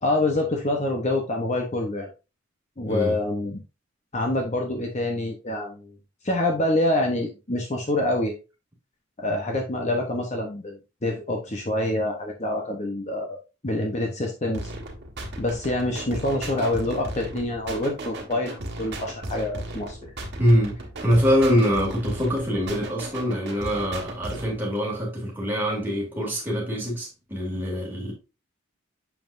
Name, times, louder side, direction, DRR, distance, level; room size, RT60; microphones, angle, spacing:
voice 1, 0.0-2.1 2.8-3.6 4.1-6.0 6.2-8.3 9.2-13.4 13.6-14.7 15.4-20.1, left 1 dB, 35° left, 0.8 m, -26 dB
sound 1, 14.5-24.6, right 1 dB, 55° right, 1.5 m, -36 dB
voice 2, 20.4-20.8 21.0-28.1, equal, 10° right, 2.4 m, -24 dB
7.1 x 5.8 x 2.5 m
head